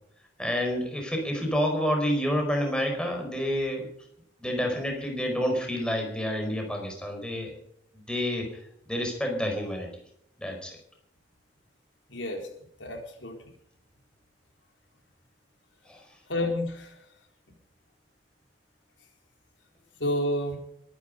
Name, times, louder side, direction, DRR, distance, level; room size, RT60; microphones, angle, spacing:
voice 1, 0.4-3.9 4.4-7.6 8.1-8.5 8.9-9.9 10.4-10.8 15.9-16.0, equal, 5° left, 2 dB, 4.7 m, -29 dB
voice 2, 12.1-12.5 12.8-13.4 16.3-17.0 20.0-20.6, left 1 dB, 90° left, 3 dB, 4.2 m, -29 dB
22.5 x 10.5 x 5.3 m, 0.71 s
head